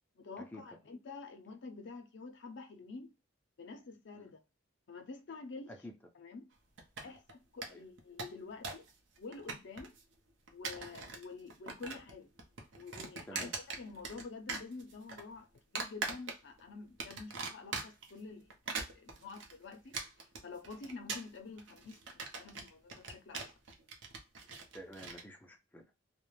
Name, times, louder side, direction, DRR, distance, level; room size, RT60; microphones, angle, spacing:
voice 1, 0.2-3.1 3.6-4.4 4.9-5.7 6.1-6.5 7.0-8.9 9.2-9.9 10.5-12.3 12.7-23.5, left 4 dB, 65° left, 0.5 m, -48 dB
sound 1, 6.8-7.3 7.6-7.7 8.0-8.9 9.2-10.0 10.5-11.2 11.5-12.1 12.4-14.2 14.5-15.2 15.8-16.6 17.0-18.1 18.5-25.2, right 4 dB, 70° right, 0.6 m, -41 dB
voice 2, 24.7-25.8, equal, 10° left, 0.4 m, -50 dB
2.4 x 2.1 x 3.0 m
head